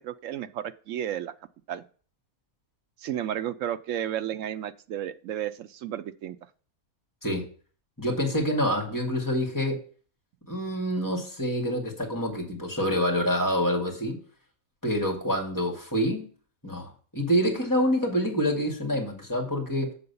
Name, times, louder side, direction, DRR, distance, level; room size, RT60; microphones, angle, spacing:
voice 1, 0.0-1.3 1.7-1.9 3.0-6.4, right 10 dB, 70° right, 12 dB, 0.8 m, -32 dB
voice 2, 8.0-9.8 10.5-14.2 14.8-16.3 16.6-19.9, equal, 15° left, -1 dB, 2.0 m, -27 dB
7.9 x 3.9 x 6.8 m, 0.41 s
omnidirectional pair, 1.5 m